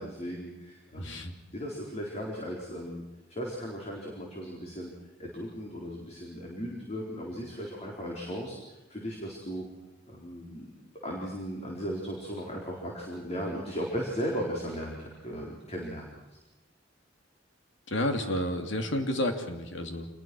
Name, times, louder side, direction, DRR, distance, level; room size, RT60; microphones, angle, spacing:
voice 1, 0.0-1.2 1.5-3.0 3.3-4.9 5.2-8.6 8.9-9.6 10.1-10.7 11.0-16.1, equal, 35° left, -1 dB, 4.3 m, -36 dB
voice 2, 1.0-1.3 17.9-20.1, left 1 dB, 70° left, 6 dB, 2.8 m, -30 dB
27.0 x 21.0 x 6.3 m, 1.1 s
head